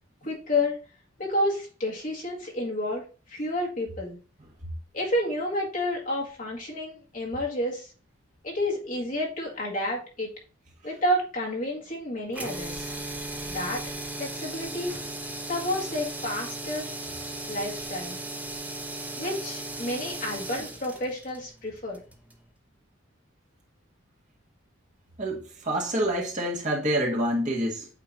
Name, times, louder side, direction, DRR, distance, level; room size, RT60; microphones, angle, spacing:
voice 1, 0.2-0.8 1.2-3.0 3.3-4.2 4.9-7.9 8.4-10.3 10.8-12.9 13.5-13.8 14.2-15.0 15.5-16.9 17.5-18.2 19.2-22.0, left 1 dB, 40° left, 2.0 m, -30 dB
sound 1, 12.3-22.4, right 2 dB, 5° right, 0.7 m, -37 dB
voice 2, 25.2-27.9, right 1 dB, 40° right, 1.5 m, -27 dB
8.4 x 3.0 x 3.9 m
head